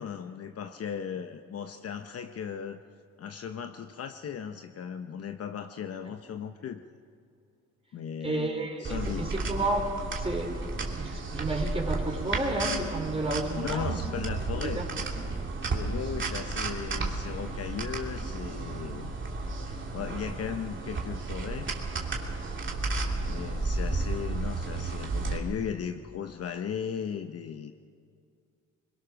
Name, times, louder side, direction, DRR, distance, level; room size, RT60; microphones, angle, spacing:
voice 1, 0.0-2.8 3.2-6.8 7.9-9.3 13.6-14.9 15.6-19.1 19.6-21.7 22.2-22.6 23.2-27.8, left 7 dB, 50° left, 7 dB, 0.8 m, -37 dB
voice 2, 8.2-9.9 10.2-10.6 10.9-14.1 14.5-14.9, right 2 dB, 20° right, 1 dB, 3.9 m, -31 dB
sound 1, 8.8-25.4, right 3 dB, 40° right, 2.7 m, -33 dB
22.0 x 21.5 x 6.3 m, 2.2 s
cardioid pair, 90°, 30 cm